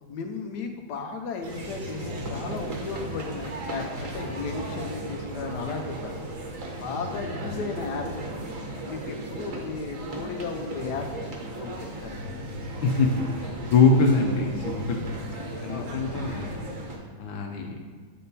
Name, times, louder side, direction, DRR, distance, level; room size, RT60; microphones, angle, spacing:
voice 1, 0.0-6.2 6.7-8.3 8.8-12.3 15.4-15.9, left 4 dB, 70° left, 5 dB, 1.1 m, -35 dB
sound 1, 1.4-17.0, right 1 dB, 50° right, 1.2 m, -35 dB
voice 2, 13.6-15.0 15.6-16.5 17.2-17.8, left 4 dB, 85° left, 1 dB, 1.4 m, -23 dB
8.5 x 3.8 x 4.0 m, 1.5 s
omnidirectional pair, 2.1 m